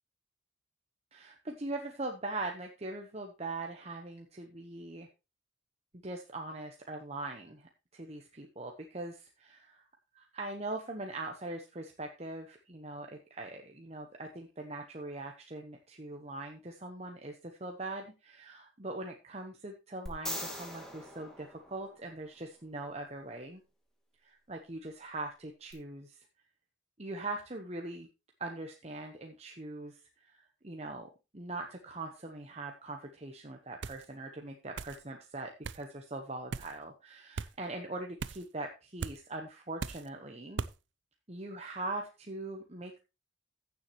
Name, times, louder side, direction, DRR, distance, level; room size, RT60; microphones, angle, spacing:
voice 1, 1.1-5.1 5.9-9.9 10.1-23.6 24.2-26.3 27.0-28.1 28.4-40.6 41.3-43.0, right 2 dB, 30° right, 3 dB, 1.0 m, -41 dB
sound 1, 20.1-22.3 25.7-25.8, equal, 5° left, 2.1 m, -41 dB
sound 2, 33.8-34.1 34.8-35.0 35.6-35.8 36.5-36.7 37.4-37.5 38.2-38.5 39.0-39.2 39.8-40.1 40.6-40.8, right 4 dB, 60° right, 0.5 m, -38 dB
15.5 x 7.1 x 3.0 m, 0.28 s
head